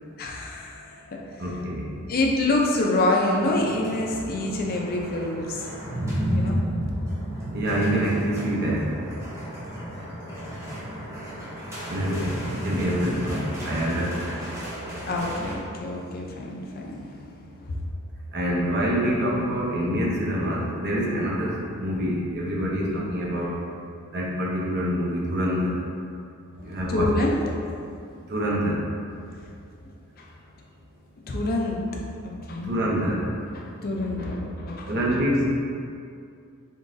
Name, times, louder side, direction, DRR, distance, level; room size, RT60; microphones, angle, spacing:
voice 1, 0.2-1.4 2.1-5.7 6.3-6.6 15.0-17.8 26.6-27.6 30.2-30.3 31.3-32.0 32.2-32.8 33.5-35.2, left 2 dB, 40° left, -1 dB, 0.5 m, -27 dB
voice 2, 1.4-1.9 7.5-9.0 11.9-14.5 15.0-15.1 18.3-23.6 24.1-25.8 26.6-27.1 28.2-28.9 32.6-33.3 34.8-35.5, equal, 50° right, -3 dB, 0.7 m, -26 dB
sound 1, 3.2-15.5, equal, 15° right, 0.8 m, -32 dB
3.8 x 3.6 x 2.6 m, 2.4 s
head